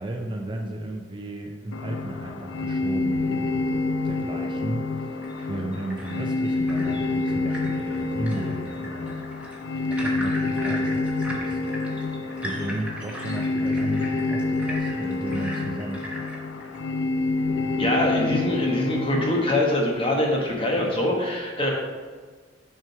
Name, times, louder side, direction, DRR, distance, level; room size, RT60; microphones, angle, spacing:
voice 1, 0.0-3.7 4.0-9.2 9.9-16.0, right 1 dB, 25° right, 2 dB, 0.5 m, -34 dB
sound 1, 1.7-19.6, left 3 dB, 75° left, 0.4 m, -28 dB
sound 2, 5.2-16.8, equal, 5° right, 1.1 m, -38 dB
voice 2, 17.8-21.7, left 1 dB, 30° left, -1 dB, 1.3 m, -24 dB
6.2 x 4.5 x 4.7 m, 1.4 s
head